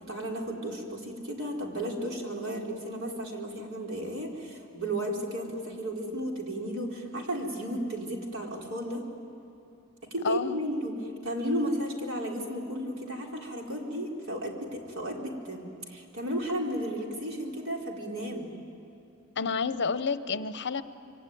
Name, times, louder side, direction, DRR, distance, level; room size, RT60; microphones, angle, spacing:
voice 1, 0.0-9.0 10.1-11.0 11.2-18.5, right 1 dB, 65° right, 0 dB, 4.2 m, -34 dB
voice 2, 10.2-10.6 19.4-20.8, left 5 dB, 55° left, 12 dB, 0.9 m, -29 dB
26.0 x 24.0 x 9.5 m, 2.8 s
head